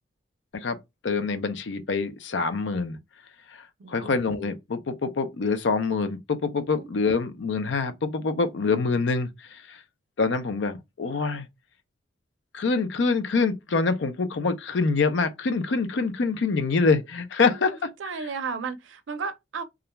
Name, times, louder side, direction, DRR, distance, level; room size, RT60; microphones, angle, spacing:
voice 1, 1.0-3.0 3.5-9.8 10.2-11.5 12.5-17.9 18.2-18.3, left 4 dB, 75° left, 0.5 m, -25 dB
voice 2, 3.8-4.1 6.7-6.9 17.5-17.6 18.0-19.6, right 5 dB, 90° right, 0.5 m, -33 dB
2.4 x 2.2 x 2.9 m
head